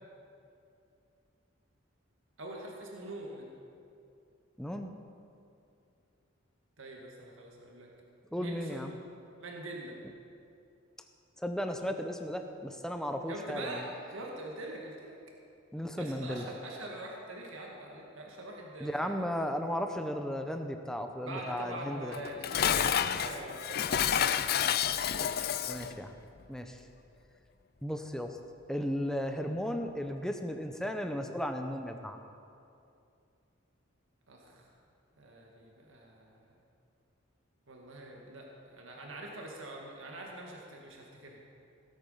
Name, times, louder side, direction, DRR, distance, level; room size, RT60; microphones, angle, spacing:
voice 1, 2.4-3.5 6.8-7.9 8.4-8.9 9.4-10.0 13.3-15.2 16.0-19.1 21.2-24.5 24.9-25.6 34.3-34.6 35.2-36.4 37.7-41.4, right 1 dB, 80° right, -1 dB, 1.9 m, -44 dB
voice 2, 4.6-4.9 8.3-8.9 11.4-13.8 15.7-16.4 18.8-22.1 25.7-26.1 26.5-26.8 27.8-28.4 28.7-32.2, equal, 5° left, 5 dB, 0.7 m, -35 dB
Dishes pots and pans, 22.1-25.9, left 9 dB, 50° left, 0.4 m, -29 dB
17.0 x 8.5 x 5.6 m, 2.6 s
head